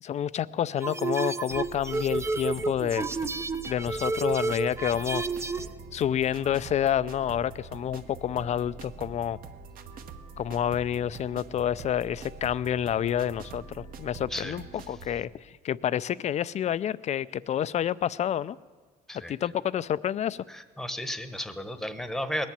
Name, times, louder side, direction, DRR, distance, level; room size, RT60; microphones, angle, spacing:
voice 1, 0.0-3.1 3.7-5.2 5.9-9.4 10.4-18.6 19.3-20.4, left 10 dB, 40° left, 0.4 m, -29 dB
sound 1, 0.8-5.7, right 3 dB, 15° right, 0.5 m, -31 dB
sound 2, 1.5-15.2, right 4 dB, 60° right, 1.2 m, -44 dB
voice 2, 20.5-22.5, equal, ahead, 1.0 m, -33 dB
19.5 x 7.4 x 9.6 m
cardioid pair, 110°, 17 cm